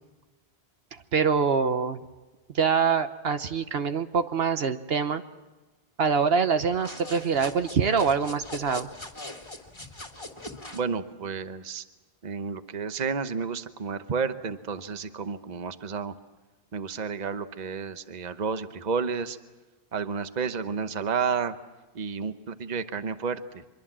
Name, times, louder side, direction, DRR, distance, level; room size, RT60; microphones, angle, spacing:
voice 1, 0.9-2.0 2.5-5.2 6.0-8.9, right 6 dB, 65° right, 10 dB, 1.1 m, -25 dB
sound 1, 6.7-10.9, left 2 dB, 25° left, 2.1 m, -41 dB
voice 2, 10.7-11.8 12.2-16.1 16.7-19.4 19.9-21.6 21.9-23.6, right 5 dB, 45° right, 11 dB, 1.0 m, -31 dB
24.5 x 22.5 x 7.5 m, 1.2 s
omnidirectional pair, 1.1 m